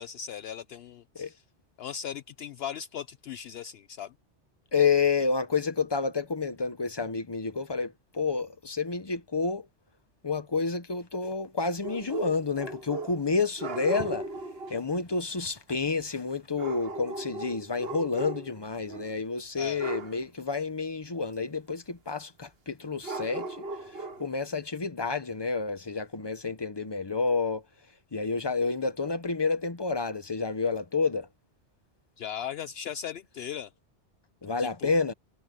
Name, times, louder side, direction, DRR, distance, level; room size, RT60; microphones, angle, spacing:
voice 1, 0.0-1.3 1.8-4.1 19.6-19.8 32.2-33.7 34.6-34.9, left 8 dB, 70° left, 0.8 m, -38 dB
voice 2, 4.7-9.7 10.2-14.3 14.7-27.6 28.1-31.3 34.4-35.1, left 4 dB, 25° left, 1.1 m, -29 dB
sound 1, 11.8-13.3 13.6-14.8 16.6-18.6 18.9-19.2 19.8-20.2 23.0-24.3, right 2 dB, 60° right, 1.5 m, -37 dB
omnidirectional pair, 1.2 m